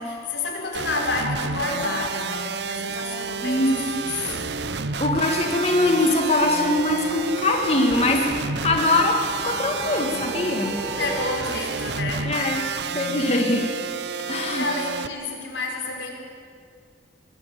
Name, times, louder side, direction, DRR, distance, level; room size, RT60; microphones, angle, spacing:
voice 1, 0.0-4.4 11.0-12.3 14.5-16.1, left 3 dB, 90° left, 1 dB, 5.6 m, -29 dB
sound 1, 0.7-15.1, right 5 dB, 70° right, 0.8 m, -30 dB
sound 2, 3.1-11.3, left 1 dB, 10° left, 1.3 m, -40 dB
voice 2, 3.4-4.0 5.0-9.2 9.4-10.8 12.3-13.7 14.3-14.7, left 2 dB, 35° left, 1 dB, 1.9 m, -22 dB
24.0 x 21.5 x 8.6 m, 2.2 s
head